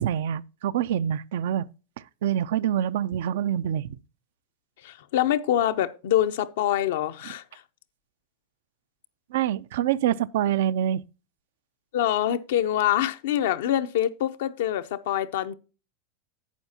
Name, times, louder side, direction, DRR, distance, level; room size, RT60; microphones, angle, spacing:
voice 1, 0.0-1.7 2.2-4.0 9.3-11.0, right 10 dB, 75° right, 0.4 m, -26 dB
voice 2, 4.8-7.6 11.9-15.6, left 11 dB, 75° left, 0.6 m, -25 dB
11.5 x 8.0 x 2.7 m
supercardioid pair, 120°, 0 cm